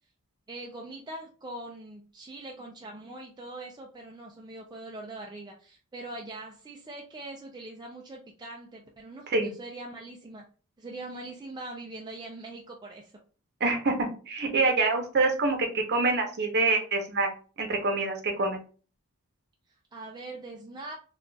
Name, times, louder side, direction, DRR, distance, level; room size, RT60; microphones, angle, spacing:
voice 1, 0.5-10.4 10.8-13.1 19.9-20.9, right 2 dB, 20° right, 0 dB, 0.4 m, -42 dB
voice 2, 13.6-14.0 14.3-17.3 17.6-18.6, right 3 dB, 50° right, 3 dB, 0.7 m, -26 dB
3.9 x 2.3 x 2.2 m, 0.38 s
head